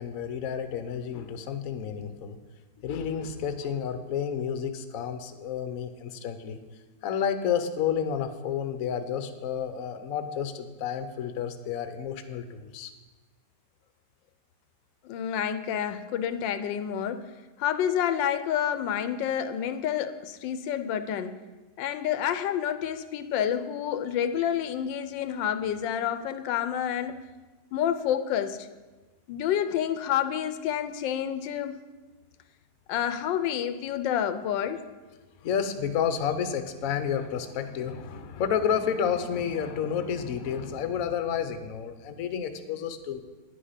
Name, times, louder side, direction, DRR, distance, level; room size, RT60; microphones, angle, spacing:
voice 1, 0.0-2.4 2.8-6.6 7.0-12.9 35.4-43.2, left 8 dB, 55° left, 9 dB, 1.0 m, -30 dB
voice 2, 15.0-17.3 17.6-21.4 21.8-27.2 27.7-28.7 29.3-31.8 32.9-34.8, left 9 dB, 85° left, 11 dB, 1.3 m, -29 dB
10.0 x 8.4 x 5.7 m, 1.2 s
omnidirectional pair, 2.0 m